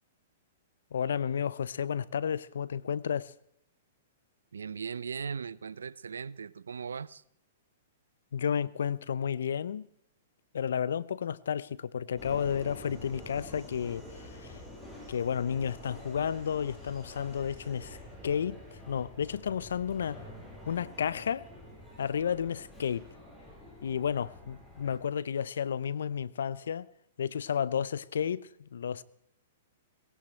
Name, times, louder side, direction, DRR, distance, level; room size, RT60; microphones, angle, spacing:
voice 1, 0.9-3.3 8.3-9.9 10.5-14.6 15.1-18.0 18.2-18.6 18.9-20.2 20.7-21.5 22.0-23.0 23.8-26.9 27.2-29.0, left 8 dB, 75° left, 0.7 m, -32 dB
voice 2, 4.5-7.2, right 6 dB, 85° right, 0.6 m, -38 dB
Subway metro underground, 12.2-25.0, left 1 dB, 15° left, 7.5 m, -48 dB
19.0 x 16.5 x 4.5 m
hypercardioid pair, 125°, 0 cm